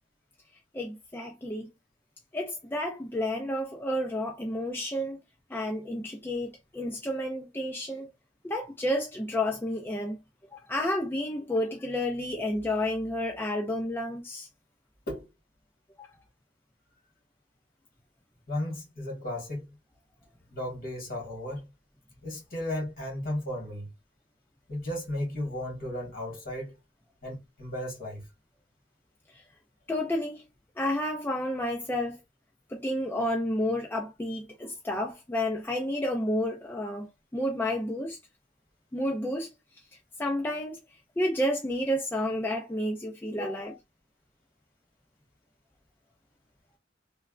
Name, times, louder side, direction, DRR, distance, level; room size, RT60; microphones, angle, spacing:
voice 1, 0.7-1.7 2.3-5.2 5.5-8.1 8.4-10.2 10.5-14.5 16.0-16.1 29.9-30.4 30.8-32.2 32.7-37.1 37.3-38.2 38.9-39.5 40.2-40.8 41.2-43.7, left 1 dB, 10° left, 0.4 m, -30 dB
voice 2, 18.5-19.6 20.5-21.7 22.2-23.9 24.7-26.7 27.2-28.2 43.4-43.8, left 1 dB, 50° left, 1.6 m, -35 dB
3.2 x 2.2 x 2.3 m
head